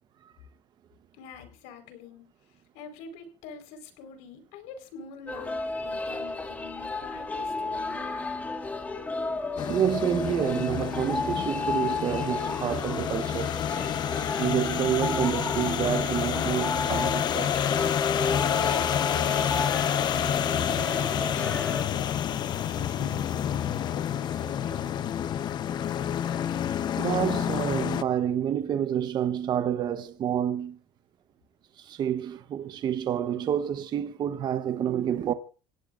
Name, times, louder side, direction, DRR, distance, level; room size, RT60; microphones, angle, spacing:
voice 1, 1.2-2.2 2.7-8.2 20.6-24.8, left 5 dB, 75° left, 4.6 m, -45 dB
sound 1, 5.3-21.8, left 3 dB, 15° left, 1.8 m, -33 dB
sound 2, 9.6-28.0, left 9 dB, 35° left, 0.8 m, -29 dB
voice 2, 9.7-13.6 14.4-18.0 27.0-30.8 31.8-35.3, right 9 dB, 35° right, 1.0 m, -28 dB
27.5 x 17.0 x 2.6 m
cardioid pair, 140°, 12 cm